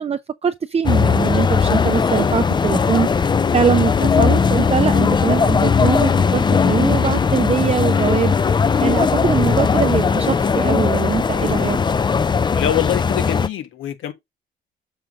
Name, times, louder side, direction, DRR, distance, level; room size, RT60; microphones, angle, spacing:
voice 1, 0.0-3.1 3.5-8.4 8.8-11.8, right 7 dB, 30° right, 0.5 m, -22 dB
sound 1, 0.8-13.5, left 5 dB, 25° left, 0.4 m, -18 dB
sound 2, 2.9-8.9, left 10 dB, 65° left, 2.8 m, -28 dB
voice 2, 12.5-14.1, left 11 dB, 85° left, 1.4 m, -24 dB
6.9 x 3.8 x 5.2 m
cardioid pair, 90°, 20 cm